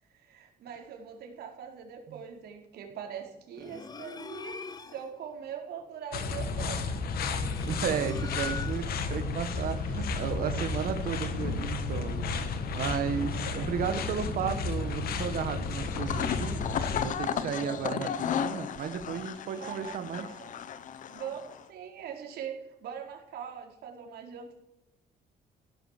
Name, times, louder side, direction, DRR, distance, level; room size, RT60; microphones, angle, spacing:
voice 1, 0.1-4.6 4.9-7.0 13.1-13.7 19.6-20.5 21.1-24.5, right 8 dB, 90° right, 2 dB, 4.4 m, -42 dB
sound 1, 3.6-5.2 7.0-9.1, left 5 dB, 25° left, 0.8 m, -42 dB
sound 2, 6.1-17.1, left 4 dB, 70° left, 1.7 m, -32 dB
voice 2, 7.6-12.2 12.7-16.6 17.0-20.3, right 8 dB, 65° right, 9 dB, 1.7 m, -33 dB
sound 3, 15.8-21.6, left 8 dB, 55° left, 1.1 m, -34 dB
16.5 x 11.5 x 7.4 m, 0.87 s
cardioid pair, 170°, 16 cm